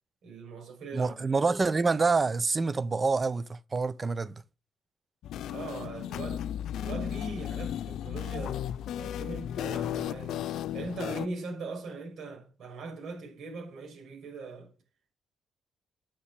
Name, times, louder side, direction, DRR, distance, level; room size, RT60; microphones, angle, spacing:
voice 1, 0.2-1.3 5.5-6.4 6.8-8.7 9.0-10.4 10.7-14.7, right 3 dB, 70° right, 5.8 m, -40 dB
voice 2, 0.9-4.3, right 4 dB, 30° right, 0.9 m, -27 dB
sound 1, 5.2-11.3, left 11 dB, 80° left, 0.6 m, -35 dB
9.8 x 7.2 x 6.6 m
cardioid pair, 90°, 0 cm